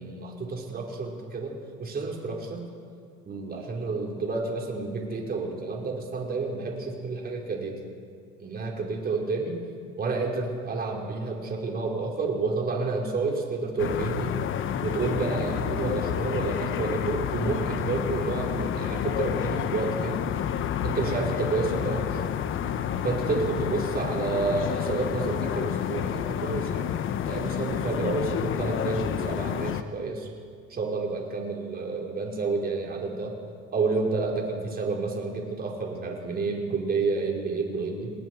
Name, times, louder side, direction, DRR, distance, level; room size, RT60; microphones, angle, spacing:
voice 1, 0.0-2.6 3.3-7.8 8.4-9.6 10.0-14.3 14.8-20.2 20.8-22.2 23.0-26.9 27.3-30.3 30.7-33.3 33.7-38.1, right 3 dB, 30° right, -1 dB, 4.7 m, -30 dB
sound 1, 13.8-29.8, left 9 dB, 40° left, 1.2 m, -29 dB
28.5 x 20.0 x 4.8 m, 2.2 s
supercardioid pair, 100°, 30 cm